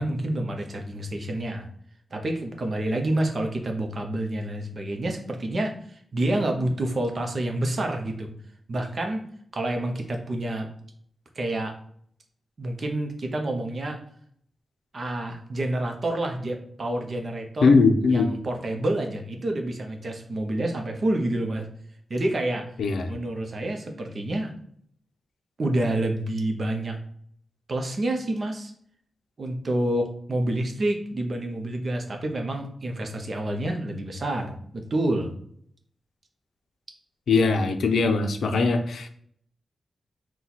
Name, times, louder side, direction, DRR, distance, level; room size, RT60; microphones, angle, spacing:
voice 1, 0.0-1.7 2.1-8.3 8.7-9.2 9.5-10.7 11.3-11.7 12.6-14.0 14.9-17.7 18.1-21.7 22.1-22.7 23.1-24.5 25.6-27.0 27.7-28.7 29.4-35.3, right 1 dB, 40° right, 4 dB, 0.7 m, -28 dB
voice 2, 17.6-18.3 22.8-23.1 37.3-39.1, left 4 dB, 85° left, 7 dB, 0.5 m, -20 dB
4.3 x 2.2 x 4.0 m, 0.64 s
wide cardioid pair, 135°, 0 cm